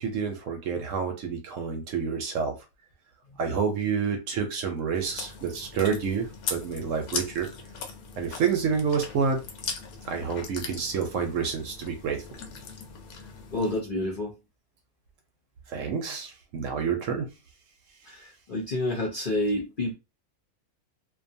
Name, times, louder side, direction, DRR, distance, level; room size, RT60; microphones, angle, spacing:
voice 1, 0.0-2.6 3.4-7.5 8.2-9.4 10.1-12.2 15.7-17.3, right 6 dB, 70° right, 0.9 m, -28 dB
Chewing mastication, 4.9-13.8, left 5 dB, 80° left, 1.1 m, -39 dB
voice 2, 13.5-14.4 18.1-19.9, left 1 dB, 50° left, 0.6 m, -29 dB
2.5 x 2.3 x 2.6 m
omnidirectional pair, 1.6 m